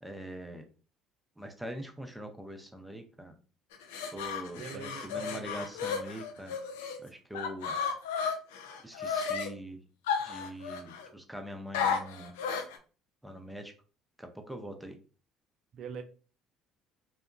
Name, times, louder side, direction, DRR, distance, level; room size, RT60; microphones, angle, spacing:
voice 1, 0.0-0.6 1.4-3.4 4.1-6.6 7.0-7.8 8.8-9.8 10.2-12.3 13.2-13.7 14.2-15.0, equal, 5° right, 5 dB, 0.6 m, -43 dB
sound 1, 3.7-7.0 7.3-9.5 10.1-11.1 11.7-12.8, left 6 dB, 80° left, 0.4 m, -33 dB
voice 2, 4.5-5.6 15.7-16.0, right 6 dB, 55° right, 6 dB, 0.5 m, -43 dB
2.8 x 2.2 x 2.5 m, 0.37 s
hypercardioid pair, 60°, 0 cm